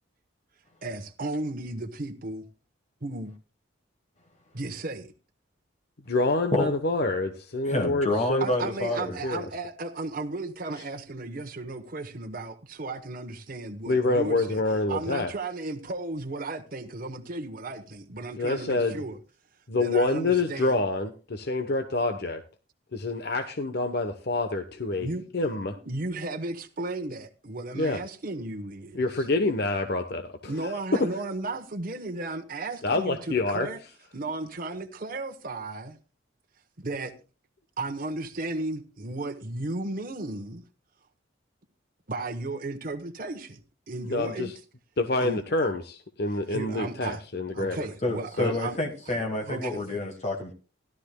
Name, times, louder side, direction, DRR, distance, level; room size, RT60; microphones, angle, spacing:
voice 1, 0.8-2.4 3.0-3.3 4.5-5.1 8.4-14.6 14.9-19.2 19.8-20.8 25.0-25.3 25.7-29.0 30.4-33.8 34.1-36.0 36.8-37.1 37.8-40.6 42.1-43.6 43.9-44.5 45.2-45.4 46.5-47.2 47.5-48.8 49.5-49.8, right 2 dB, 45° right, 1.0 m, -34 dB
voice 2, 6.1-8.5 9.2-9.4 13.9-15.3 18.4-19.0 19.7-22.4 22.9-25.1 25.3-25.7 27.7-28.0 28.9-31.1 32.8-33.7 44.1-44.6 45.0-47.8 48.4-48.5, left 2 dB, 55° left, 0.9 m, -27 dB
voice 3, 7.6-9.2 48.0-50.5, left 2 dB, 35° left, 1.4 m, -28 dB
16.5 x 12.0 x 2.2 m
head